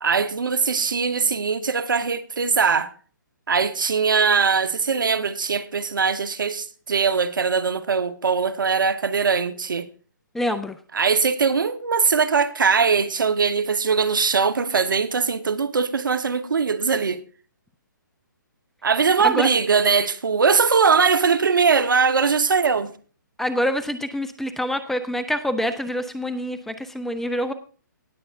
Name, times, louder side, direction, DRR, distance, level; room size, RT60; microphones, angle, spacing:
voice 1, 0.0-2.9 3.5-9.9 10.9-17.2 18.8-22.9, right 5 dB, 75° right, 1.2 m, -21 dB
voice 2, 10.3-10.8 19.2-19.5 23.4-27.5, equal, 5° left, 0.5 m, -26 dB
18.5 x 7.8 x 2.6 m
hypercardioid pair, 145°, 11 cm